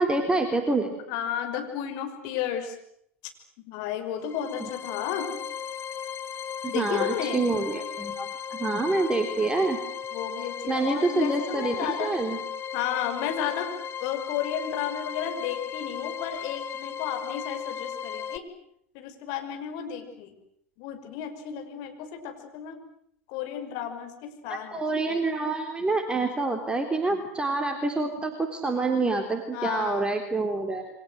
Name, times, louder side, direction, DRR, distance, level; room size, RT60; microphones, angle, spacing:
voice 1, 0.0-0.9 6.7-9.8 10.7-12.4 24.7-30.9, right 3 dB, 10° right, 4 dB, 3.6 m, -27 dB
voice 2, 1.1-2.8 3.6-5.3 6.7-7.4 10.1-12.1 12.7-13.7 14.0-18.4 18.9-20.3 20.8-22.8 23.3-24.8 25.1-25.2 29.5-30.1, left 9 dB, 55° left, 6 dB, 6.1 m, -33 dB
sound 1, 4.2-18.4, left 8 dB, 35° left, 1.3 m, -36 dB
29.0 x 24.5 x 7.9 m, 0.71 s
hypercardioid pair, 85°, 8 cm